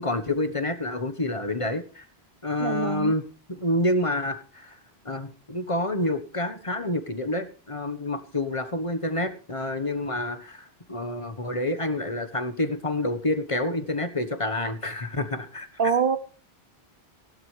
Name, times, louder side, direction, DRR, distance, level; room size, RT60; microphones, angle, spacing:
voice 1, 0.0-2.1 2.4-4.8 5.0-15.7, left 1 dB, 30° left, 1.3 m, -28 dB
voice 2, 2.6-3.1 15.8-16.2, right 6 dB, 60° right, 0.9 m, -24 dB
17.0 x 12.0 x 3.3 m
omnidirectional pair, 1.1 m